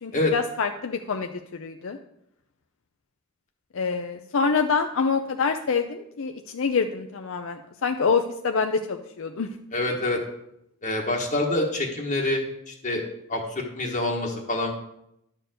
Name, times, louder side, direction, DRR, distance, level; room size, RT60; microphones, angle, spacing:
voice 1, 0.0-2.0 3.7-9.5, left 5 dB, 65° left, 6 dB, 0.5 m, -26 dB
voice 2, 9.7-10.2 10.8-13.0 13.3-14.7, left 2 dB, 35° left, -1 dB, 1.3 m, -26 dB
10.5 x 4.5 x 7.6 m, 0.79 s
head